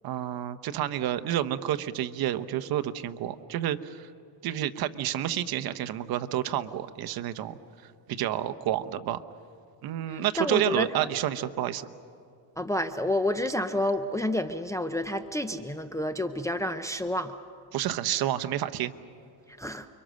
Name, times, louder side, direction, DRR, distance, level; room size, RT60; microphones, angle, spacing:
voice 1, 0.0-4.1 4.4-9.2 9.8-11.9 17.7-18.9, right 12 dB, 55° right, 10 dB, 1.0 m, -30 dB
voice 2, 10.1-11.1 12.6-17.3 19.6-19.9, left 1 dB, 5° left, 6 dB, 0.6 m, -29 dB
30.0 x 23.5 x 6.4 m, 2.6 s
cardioid pair, 135°, 44 cm